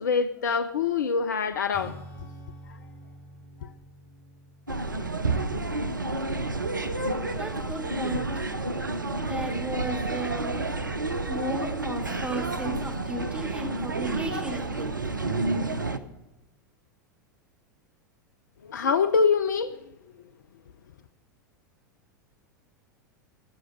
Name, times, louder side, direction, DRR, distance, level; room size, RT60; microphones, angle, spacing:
voice 1, 0.0-1.9 2.7-2.8 3.6-3.7 18.6-19.8, left 5 dB, 70° left, 11 dB, 0.6 m, -25 dB
Acoustic guitar / Strum, 1.7-7.6, equal, 45° left, 4.5 m, -48 dB
sound 1, 4.7-16.0, right 2 dB, 85° right, 0.8 m, -30 dB
voice 2, 7.3-8.3 9.2-10.6 11.2-15.0, right 1 dB, 10° right, 2 dB, 3.4 m, -34 dB
17.5 x 6.2 x 7.4 m, 1.0 s
figure-of-eight pair, 90°, 10 cm